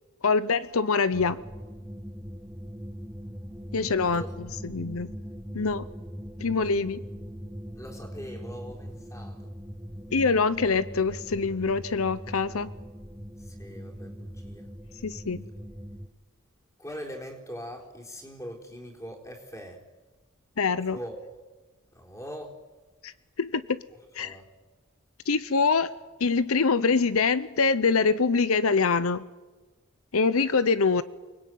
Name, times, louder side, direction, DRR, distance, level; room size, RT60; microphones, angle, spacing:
voice 1, 0.2-1.4 3.7-5.1 5.5-5.8 6.4-7.0 10.1-12.7 15.0-15.4 20.6-21.0 23.0-23.1 23.4-23.8 24.1-24.4 25.3-25.9 26.2-29.3 30.1-31.0, left 4 dB, 80° left, 15 dB, 0.8 m, -24 dB
sound 1, 1.1-16.1, equal, 10° right, 0.9 m, -41 dB
voice 2, 7.7-9.5 13.4-14.7 16.8-19.8 20.9-21.3 21.9-22.6 24.2-24.5, equal, 15° left, 1 dB, 4.2 m, -41 dB
29.0 x 20.5 x 9.4 m, 1.3 s
head